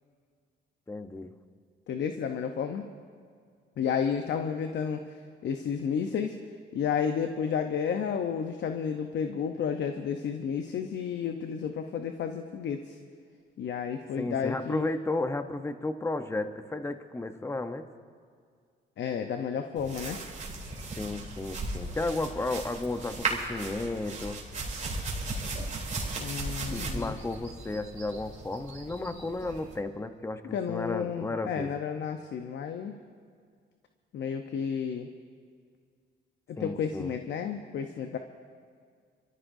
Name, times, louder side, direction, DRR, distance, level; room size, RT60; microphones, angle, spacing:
voice 1, 0.9-1.3 14.2-17.8 21.0-24.4 26.7-31.7 36.6-37.1, left 2 dB, 15° left, 8 dB, 0.9 m, -33 dB
voice 2, 1.9-2.9 3.8-5.0 5.4-6.4 6.7-13.0 13.6-14.9 19.0-20.2 26.2-27.1 30.5-33.0 34.1-35.1 36.5-38.2, left 7 dB, 65° left, 6 dB, 0.9 m, -31 dB
sound 1, 19.8-29.8, right 3 dB, 40° right, 3.4 m, -36 dB
27.5 x 14.0 x 2.7 m, 2.1 s
cardioid pair, 90°, 20 cm